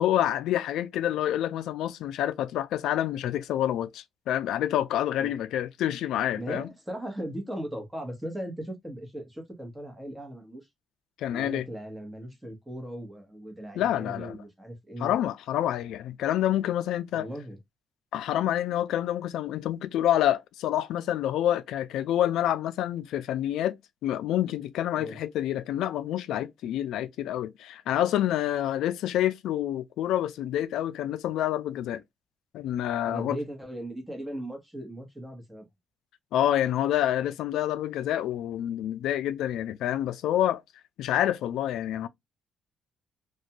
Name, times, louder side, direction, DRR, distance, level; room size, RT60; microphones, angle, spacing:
voice 1, 0.0-6.7 11.2-11.7 13.7-14.4 15.0-17.3 18.1-23.8 24.0-32.0 32.5-33.4 36.3-40.6 41.0-42.1, left 12 dB, 85° left, 0.3 m, -27 dB
voice 2, 6.4-10.7 11.3-15.1 17.1-17.6 24.9-25.2 33.0-35.7, right 1 dB, 5° right, 1.0 m, -38 dB
2.5 x 2.2 x 2.8 m
cardioid pair, 90°, 0 cm